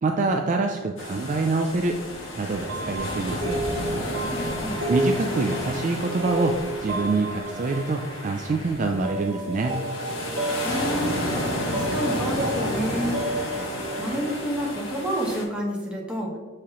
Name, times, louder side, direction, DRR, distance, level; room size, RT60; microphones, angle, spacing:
voice 1, 0.0-2.0 2.3-3.6 4.9-9.8, right 3 dB, 35° right, 3 dB, 0.3 m, -25 dB
sound 1, 1.0-15.4, left 1 dB, 60° left, 1.7 m, -32 dB
sound 2, 2.7-15.3, right 1 dB, 60° right, 1.2 m, -32 dB
voice 2, 4.3-4.8 10.6-13.2 14.0-16.3, equal, 5° right, -3 dB, 1.2 m, -29 dB
6.9 x 4.9 x 2.9 m, 1.4 s
head